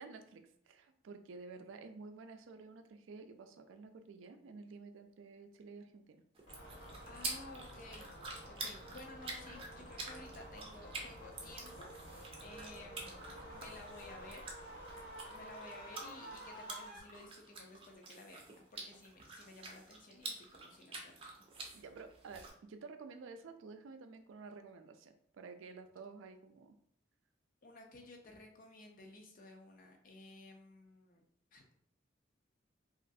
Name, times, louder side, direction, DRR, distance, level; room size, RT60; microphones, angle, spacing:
voice 1, 0.0-6.2 21.7-26.8, right 4 dB, 90° right, 8 dB, 0.4 m, -52 dB
sound 1, 6.3-22.5, right 3 dB, 30° right, 0.5 m, -48 dB
sound 2, 6.5-17.0, equal, 80° left, 0.8 m, -51 dB
voice 2, 7.1-14.5 15.3-21.3 27.6-31.2 31.5-31.7, left 2 dB, 45° left, 3 dB, 0.5 m, -55 dB
3.1 x 2.4 x 2.6 m, 0.68 s
head